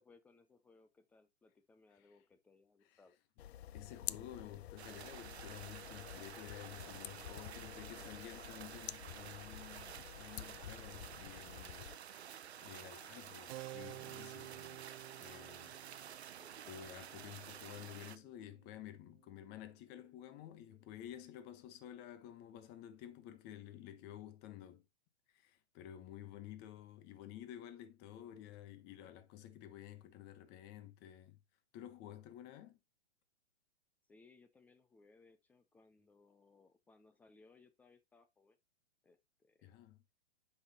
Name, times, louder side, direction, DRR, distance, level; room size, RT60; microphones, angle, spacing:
voice 1, 0.0-3.2 16.4-16.7 34.1-38.6 39.0-39.7, left 3 dB, 5° left, 0.3 m, -66 dB
sound 1, 3.4-12.0, left 12 dB, 75° left, 0.5 m, -50 dB
voice 2, 3.7-12.2 12.6-14.8 15.2-15.8 16.7-24.8 25.3-31.4 31.7-32.8 39.6-40.0, left 11 dB, 30° left, 1.2 m, -52 dB
sound 2, 4.8-18.2, right 9 dB, 85° right, 0.8 m, -51 dB
Keyboard (musical), 13.5-19.6, right 16 dB, 50° right, 0.6 m, -53 dB
7.8 x 5.9 x 2.9 m
hypercardioid pair, 125°, 32 cm